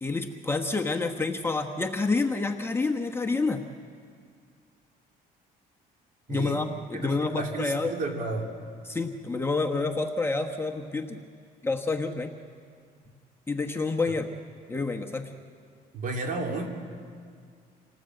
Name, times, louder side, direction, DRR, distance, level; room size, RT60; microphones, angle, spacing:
voice 1, 0.0-3.7 6.3-7.9 8.9-11.2 11.6-12.3 13.5-14.3 14.7-15.3, left 3 dB, 15° left, 2 dB, 1.2 m, -28 dB
voice 2, 6.3-8.5 15.9-16.7, right 2 dB, 50° right, 2 dB, 3.1 m, -33 dB
27.5 x 18.5 x 7.9 m, 2.1 s
cardioid pair, 110°, 17 cm